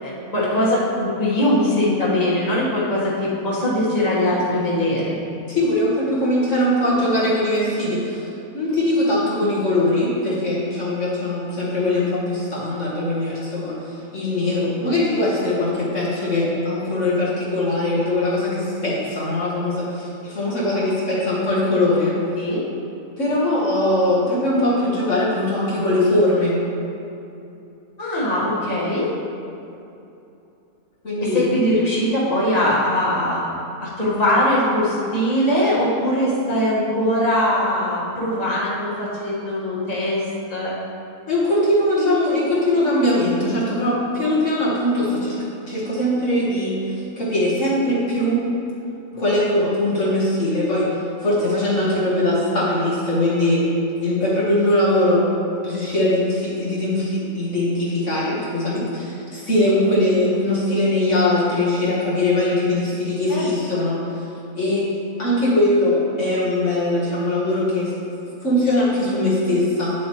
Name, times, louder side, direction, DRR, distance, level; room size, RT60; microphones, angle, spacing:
voice 1, 0.0-5.2 22.4-22.6 28.0-29.1 31.2-33.4 33.8-40.2 40.5-40.7 63.3-63.8, left 1 dB, 25° left, -8 dB, 1.7 m, -21 dB
voice 2, 5.5-8.3 8.5-22.2 23.2-26.6 31.0-31.6 41.3-45.4 45.7-48.5 49.1-50.9 51.2-53.6 54.0-55.2 55.6-64.2 64.6-64.9 65.2-67.9 68.4-69.9, left 1 dB, 55° left, -8 dB, 1.7 m, -21 dB
9.2 x 7.5 x 3.2 m, 2.7 s
omnidirectional pair, 1.5 m